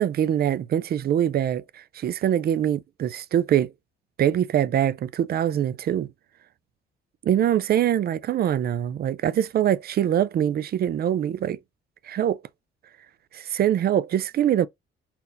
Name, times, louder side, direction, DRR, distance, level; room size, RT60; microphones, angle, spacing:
voice 1, 0.0-3.7 4.2-6.1 7.2-11.6 12.0-12.4 13.3-14.7, right 10 dB, 50° right, 0.4 m, -23 dB
4.1 x 3.9 x 2.6 m
cardioid pair, 90°, 20 cm